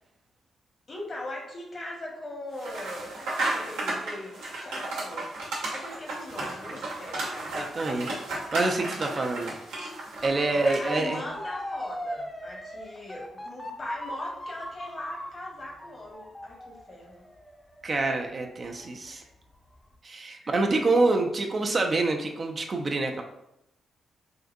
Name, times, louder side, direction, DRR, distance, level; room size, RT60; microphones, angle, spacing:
voice 1, 0.9-5.3 5.7-7.5 10.5-17.2 19.1-19.3 20.4-20.7, left 1 dB, 50° left, -2 dB, 1.2 m, -40 dB
sound 1, 2.6-11.0, right 2 dB, 80° right, 0.8 m, -34 dB
voice 2, 7.5-8.1 8.5-9.6 10.2-11.2 17.8-19.2 20.0-23.2, right 2 dB, 45° right, 3 dB, 0.4 m, -26 dB
Motor vehicle (road) / Siren, 10.2-19.1 19.5-19.9, equal, 15° left, 0.6 m, -39 dB
3.7 x 2.5 x 2.5 m, 0.84 s
hypercardioid pair, 40°, 0 cm